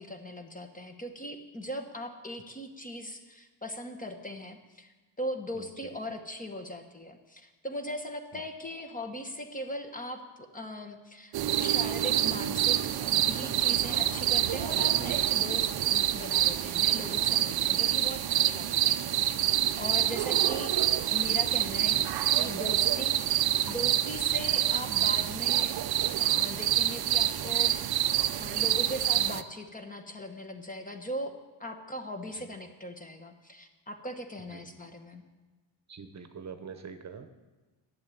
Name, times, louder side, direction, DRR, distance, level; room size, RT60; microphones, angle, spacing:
voice 1, 0.0-19.2 19.8-20.8 21.1-22.0 22.3-25.8 26.2-35.2, left 1 dB, 20° left, 5 dB, 1.1 m, -39 dB
sound 1, 11.3-29.4, right 12 dB, 55° right, 0.6 m, -27 dB
voice 2, 35.9-37.3, right 6 dB, 35° right, 8 dB, 1.0 m, -44 dB
11.0 x 7.7 x 9.2 m, 1.2 s
cardioid pair, 135°, 45 cm